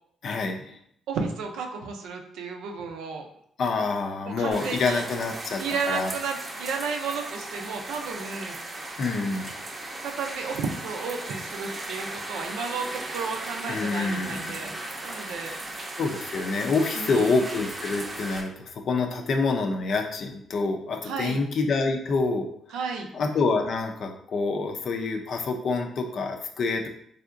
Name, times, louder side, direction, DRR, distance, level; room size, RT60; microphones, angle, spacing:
voice 1, 0.2-0.8 3.6-6.1 9.0-9.6 13.7-14.9 15.4-15.6 16.0-22.5 23.1-26.9, left 3 dB, 60° left, 4 dB, 0.5 m, -27 dB
voice 2, 1.1-3.3 4.2-5.0 5.6-8.6 10.0-14.7 15.0-15.5 16.9-17.3 21.0-21.4 22.7-23.1, right 5 dB, 85° right, 3 dB, 0.5 m, -33 dB
sound 1, 4.5-18.4, right 2 dB, 30° right, 0.6 m, -37 dB
3.4 x 2.7 x 2.5 m, 0.68 s
cardioid pair, 90°, 0 cm